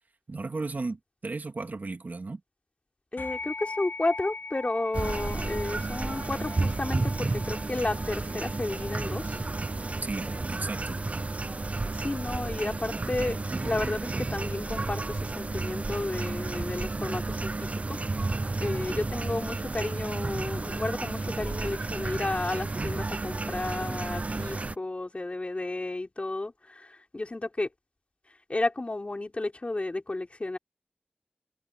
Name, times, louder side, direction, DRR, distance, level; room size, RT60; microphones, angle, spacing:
voice 1, 0.3-2.4 10.0-11.0, right 3 dB, 65° right, 2.5 m, -35 dB
voice 2, 3.1-9.4 11.9-13.4 13.6-18.0 18.6-27.7 28.5-30.6, left 2 dB, 40° left, 3.8 m, -32 dB
sound 1, 3.2-12.9, left 3 dB, 80° left, 3.4 m, -43 dB
sound 2, 4.9-24.8, right 3 dB, 45° right, 0.6 m, -32 dB
wide cardioid pair, 75°, 3 cm